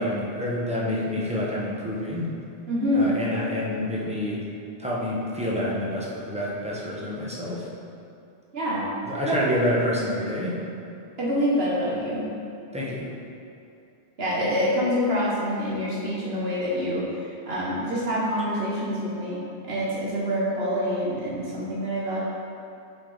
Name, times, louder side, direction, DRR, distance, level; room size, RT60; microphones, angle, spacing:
voice 1, 0.0-2.3 2.9-4.4 4.8-7.7 9.1-10.6 12.7-13.1, left 1 dB, 5° right, -6 dB, 1.1 m, -28 dB
voice 2, 2.7-3.2 8.5-8.9 9.2-9.3 11.2-12.2 14.2-17.0 17.4-19.4 19.7-22.2, equal, 65° right, -6 dB, 1.4 m, -26 dB
7.3 x 4.9 x 4.0 m, 2.6 s
omnidirectional pair, 1.1 m